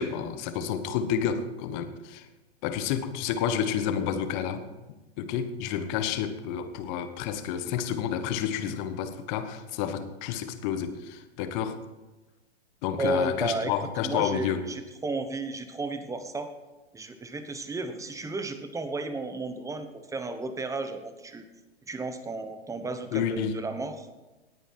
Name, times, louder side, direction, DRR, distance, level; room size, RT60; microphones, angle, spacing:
voice 1, 0.0-2.3 2.6-4.6 5.2-11.8 12.8-14.7 23.1-23.6, left 8 dB, 45° left, 9 dB, 1.4 m, -30 dB
voice 2, 13.0-13.7 14.0-16.5 16.9-21.4 21.9-24.1, right 3 dB, 10° right, 9 dB, 1.1 m, -33 dB
19.0 x 9.0 x 4.6 m, 1.1 s
hypercardioid pair, 110°, 33 cm